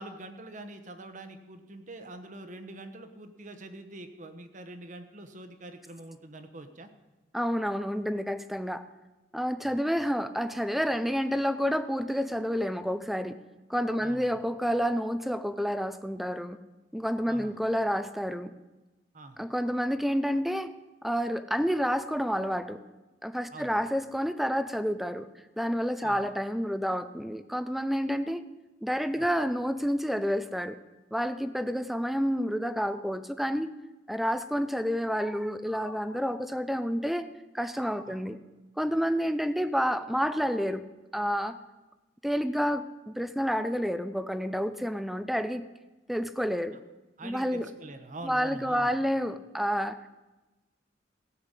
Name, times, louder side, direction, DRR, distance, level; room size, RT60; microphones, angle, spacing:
voice 1, 0.0-6.9 9.7-9.8 14.0-14.4 17.3-17.5 19.1-19.4 23.5-23.7 26.0-26.3 29.2-29.3 38.1-38.2 47.2-48.9, right 2 dB, 45° right, 8 dB, 1.1 m, -44 dB
voice 2, 7.3-8.8 9.3-13.3 13.7-16.6 16.9-18.5 19.4-20.7 21.0-22.8 23.2-25.3 25.6-28.4 28.8-30.8 31.1-33.7 34.1-37.3 37.5-38.4 38.8-40.8 41.1-41.6 42.2-45.6 46.1-46.8 47.2-47.7 48.2-50.1, equal, ahead, 11 dB, 0.5 m, -29 dB
16.5 x 5.9 x 8.2 m, 1.1 s
head